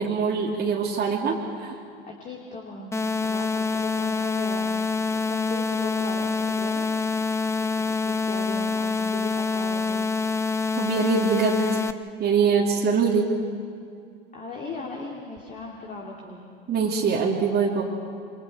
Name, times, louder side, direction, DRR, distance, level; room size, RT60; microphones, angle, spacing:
voice 1, 0.0-1.8 10.8-11.8 12.2-13.3 16.7-17.8, right 5 dB, 30° right, -3 dB, 3.0 m, -23 dB
voice 2, 2.0-4.8 5.1-7.0 7.4-10.1 14.3-16.4, left 3 dB, 25° left, -1 dB, 3.0 m, -38 dB
sound 1, 2.9-11.9, left 4 dB, 10° left, 0.7 m, -26 dB
28.5 x 26.5 x 4.4 m, 2.4 s
figure-of-eight pair, 80°, 30 cm